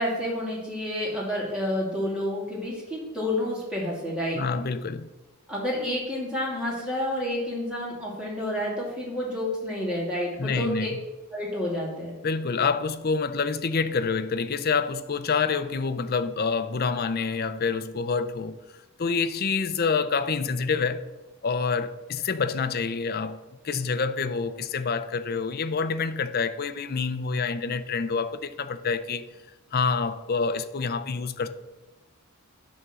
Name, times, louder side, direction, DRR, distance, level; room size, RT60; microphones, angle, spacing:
voice 1, 0.0-4.4 5.5-10.9 11.3-12.1, left 1 dB, 5° right, 2.6 m, -29 dB
voice 2, 4.3-5.1 10.4-11.0 12.2-18.6 19.0-21.0 21.4-23.4 23.6-29.3 29.7-31.5, left 5 dB, 45° left, 0.5 m, -27 dB
11.0 x 3.7 x 6.9 m
head